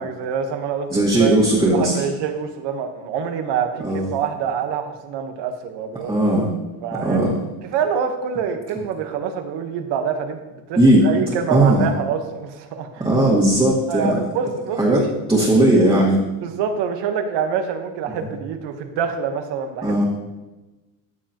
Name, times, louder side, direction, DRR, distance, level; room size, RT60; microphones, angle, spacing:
voice 1, 0.0-1.4 1.7-6.1 6.8-7.2 7.7-13.1 13.9-15.0 16.4-20.0, right 7 dB, 80° right, 6 dB, 1.3 m, -26 dB
voice 2, 0.9-2.0 3.8-4.2 6.1-6.5 6.9-7.4 10.8-11.0 11.5-11.9 13.0-14.2 14.8-16.2 18.2-18.3 19.8-20.0, right 1 dB, 10° right, -7 dB, 1.8 m, -17 dB
14.0 x 7.4 x 3.0 m, 1.1 s
cardioid pair, 145°, 42 cm